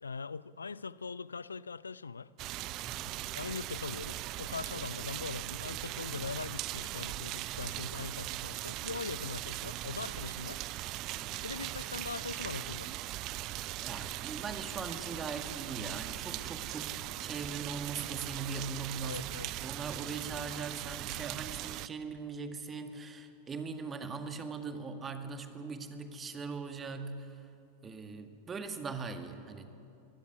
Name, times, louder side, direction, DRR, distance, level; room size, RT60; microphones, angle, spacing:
voice 1, 0.0-2.3 3.2-10.6 11.4-12.9 19.0-19.5, left 5 dB, 75° left, 0.5 m, -41 dB
sound 1, 2.4-21.9, right 16 dB, 40° right, 0.5 m, -39 dB
voice 2, 2.8-3.2 11.2-11.5 13.8-27.5 27.8-29.7, right 4 dB, 20° right, 1.9 m, -41 dB
sound 2, 2.9-13.6, left 1 dB, 35° left, 6.6 m, -61 dB
23.0 x 16.5 x 9.9 m
figure-of-eight pair, 90°, 0 cm